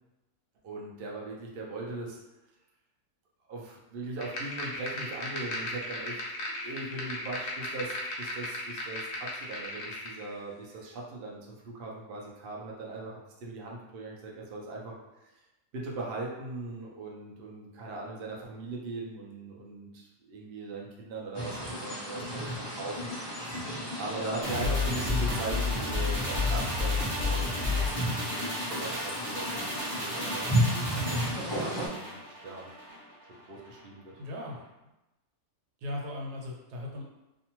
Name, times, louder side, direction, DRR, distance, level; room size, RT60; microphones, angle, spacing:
voice 1, 0.6-2.2 3.5-6.2 6.5-15.0 15.2-15.3 15.7-23.1 23.4-23.7 24.0-32.7 33.5-34.2, right 2 dB, 60° right, -3 dB, 0.6 m, -40 dB
sound 1, 4.2-10.2, left 1 dB, 65° left, 0.7 m, -37 dB
sound 2, 21.3-31.9, equal, 45° left, 0.3 m, -34 dB
sound 3, 24.4-33.0 33.3-33.4, left 3 dB, 25° right, 0.9 m, -32 dB
voice 2, 24.5-24.8 34.2-34.6 35.8-37.0, left 1 dB, 90° right, -1 dB, 1.2 m, -37 dB
2.6 x 2.5 x 2.9 m, 0.99 s
omnidirectional pair, 1.6 m